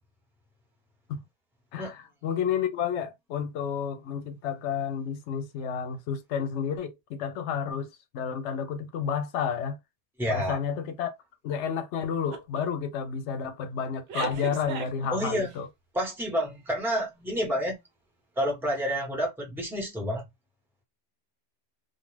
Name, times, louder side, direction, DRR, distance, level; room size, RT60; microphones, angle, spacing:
voice 1, 1.7-7.9 8.1-9.8 10.3-11.1 11.4-15.7, left 7 dB, 80° left, 0.9 m, -31 dB
voice 2, 10.2-10.6 15.1-15.5 15.9-17.8 18.4-20.3, equal, ahead, 1.0 m, -29 dB
sound 1, 12.3-12.6 13.0-13.3 14.1-15.6, right 7 dB, 65° right, 0.8 m, -36 dB
2.4 x 2.3 x 3.1 m
omnidirectional pair, 1.2 m